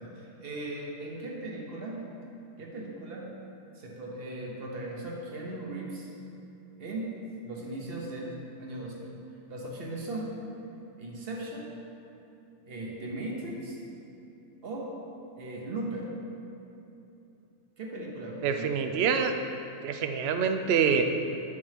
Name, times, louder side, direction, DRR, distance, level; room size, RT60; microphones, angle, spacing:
voice 1, 0.0-2.0 2.6-3.3 3.8-6.1 6.8-7.1 7.4-9.1 9.5-10.3 11.0-11.7 12.7-13.8 14.6-14.9 15.4-16.1 17.8-19.0, right 2 dB, 45° right, -2 dB, 1.2 m, -38 dB
voice 2, 18.4-19.3 19.8-21.0, right 7 dB, 75° right, 6 dB, 0.6 m, -26 dB
9.5 x 6.4 x 3.5 m, 2.9 s
omnidirectional pair, 1.6 m